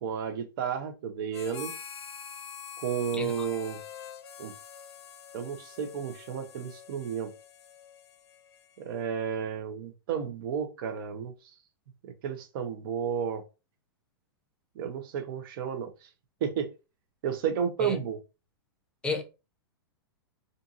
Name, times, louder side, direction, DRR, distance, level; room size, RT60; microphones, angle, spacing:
voice 1, 0.0-1.7 2.8-3.8 4.4-4.5 5.3-7.3 8.8-11.3 12.0-13.4 14.8-15.9 16.4-16.7 17.2-18.2, right 7 dB, 55° right, 0.7 m, -32 dB
Harmonica, 1.3-9.1, left 7 dB, 85° left, 0.5 m, -45 dB
voice 2, 3.1-3.3 17.8-18.0 19.0-19.2, left 4 dB, 5° left, 0.5 m, -31 dB
2.6 x 2.6 x 2.5 m
hypercardioid pair, 130°, 13 cm